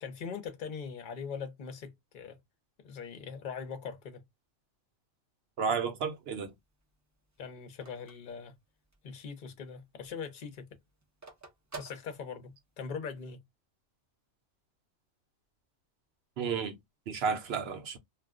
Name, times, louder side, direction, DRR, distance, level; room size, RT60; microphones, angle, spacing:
voice 1, 0.0-2.4 2.8-4.3 7.4-8.6 9.0-10.8 11.8-13.4, left 6 dB, 45° left, 0.7 m, -41 dB
voice 2, 5.6-6.5 16.4-16.8 17.1-18.0, right 6 dB, 60° right, 0.8 m, -32 dB
Telephone, 5.8-9.2 9.6-9.7 9.9-12.8, right 4 dB, 30° right, 0.3 m, -50 dB
2.3 x 2.2 x 3.5 m
omnidirectional pair, 1.4 m